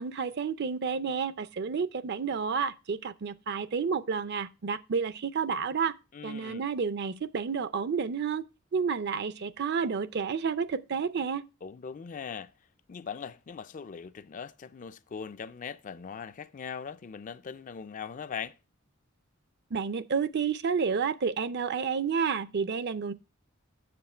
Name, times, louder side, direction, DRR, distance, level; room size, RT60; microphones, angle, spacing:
voice 1, 0.0-5.9 6.2-8.5 8.7-11.4 19.7-23.1, right 6 dB, 55° right, 0.5 m, -30 dB
voice 2, 6.1-6.7 11.6-12.5 12.9-18.5, left 6 dB, 40° left, 0.4 m, -40 dB
7.7 x 7.0 x 4.3 m
head